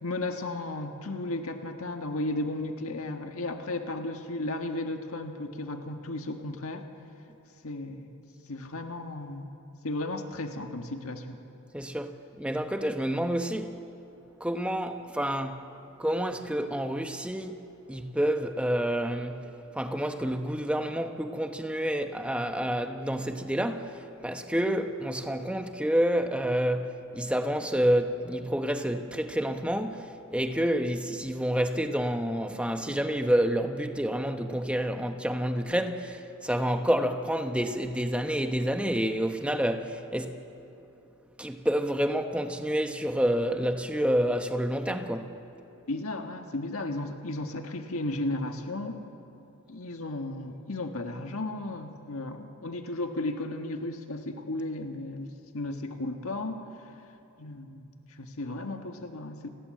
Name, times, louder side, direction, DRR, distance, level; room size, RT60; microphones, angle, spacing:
voice 1, 0.0-6.9 7.6-8.1 8.5-9.5 9.8-11.4 45.9-49.0 49.7-57.1 57.4-59.5, left 2 dB, 75° left, 1.6 m, -34 dB
voice 2, 11.7-13.8 14.4-15.6 16.0-17.6 17.9-40.4 41.4-45.4, equal, 5° right, 1.0 m, -28 dB
30.0 x 21.0 x 7.7 m
head